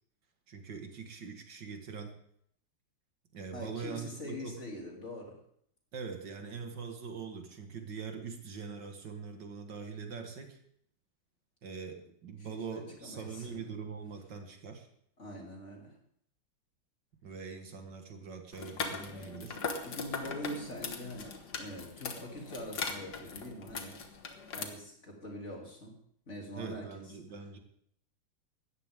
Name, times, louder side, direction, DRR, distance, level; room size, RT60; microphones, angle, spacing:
voice 1, 0.5-2.2 3.3-4.6 5.9-10.6 11.6-14.9 17.2-19.6 26.5-27.6, right 5 dB, 80° right, 4 dB, 2.5 m, -43 dB
voice 2, 3.5-5.4 12.5-13.7 15.2-16.0 19.8-24.0 24.5-25.9 26.3-27.0 27.3-27.4, left 1 dB, 40° left, -1 dB, 3.6 m, -44 dB
sound 1, 18.5-24.6, left 5 dB, 70° left, 2.0 m, -40 dB
17.5 x 13.5 x 3.7 m, 0.67 s
omnidirectional pair, 1.9 m